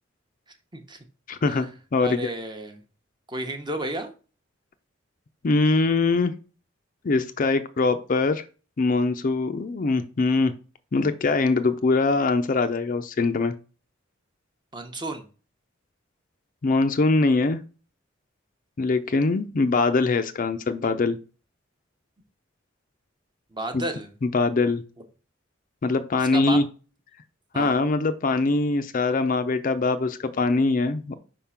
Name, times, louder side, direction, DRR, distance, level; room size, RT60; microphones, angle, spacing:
voice 1, 1.3-2.3 5.4-6.3 7.0-8.4 8.8-10.5 10.9-13.5 16.6-17.6 18.8-21.2 23.7-23.8 24.2-24.8 25.8-26.6 27.5-31.2, left 3 dB, 45° left, 10 dB, 0.4 m, -22 dB
voice 2, 2.0-2.8 3.3-4.1 14.7-15.2 23.5-24.1 26.2-26.6 27.5-27.8, right 1 dB, 25° right, 6 dB, 0.8 m, -32 dB
4.9 x 3.6 x 5.6 m, 0.36 s
head